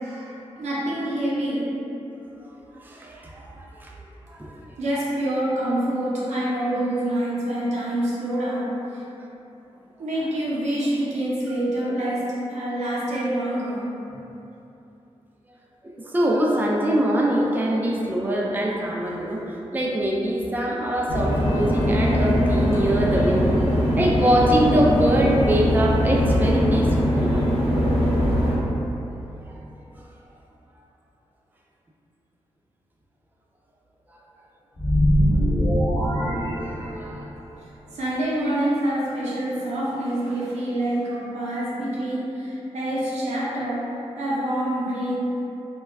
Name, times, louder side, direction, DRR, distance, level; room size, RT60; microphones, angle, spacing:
voice 1, 0.0-1.7 4.8-9.0 10.0-13.8 37.9-43.9 44.2-45.2, right 1 dB, 85° right, -7 dB, 0.6 m, -26 dB
voice 2, 2.4-3.9 4.3-4.6 15.8-27.4 29.4-29.5 34.1-34.2 36.5-37.3, right 1 dB, 15° right, -3 dB, 0.4 m, -24 dB
sound 1, 21.1-28.6, equal, 70° left, 0.8 m, -21 dB
sound 2, 34.7-37.3, equal, 30° left, 1.0 m, -22 dB
2.2 x 2.1 x 3.3 m, 2.9 s
cardioid pair, 50°, 12 cm